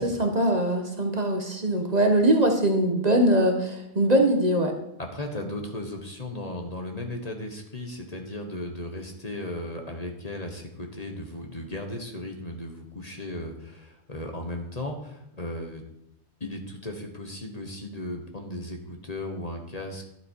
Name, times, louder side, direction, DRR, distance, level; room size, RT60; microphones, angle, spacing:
voice 1, 0.0-4.7, right 1 dB, 35° right, 3 dB, 1.3 m, -22 dB
voice 2, 5.0-15.8 16.4-20.0, left 1 dB, 35° left, 3 dB, 1.4 m, -36 dB
12.0 x 7.6 x 4.6 m, 0.82 s
omnidirectional pair, 1.2 m